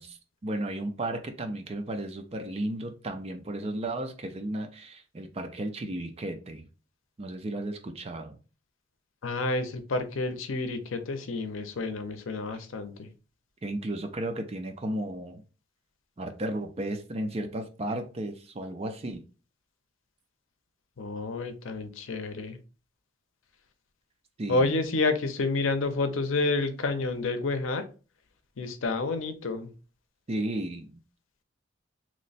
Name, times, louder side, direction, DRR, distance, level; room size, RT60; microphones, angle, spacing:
voice 1, 0.0-6.7 7.2-8.4 13.6-15.4 16.2-19.2 24.4-24.8 30.3-31.0, right 1 dB, 30° right, 0.4 m, -34 dB
voice 2, 9.2-13.1 21.0-22.6 24.5-27.8 28.6-29.7, left 3 dB, 90° left, 0.6 m, -29 dB
3.0 x 2.1 x 3.9 m
head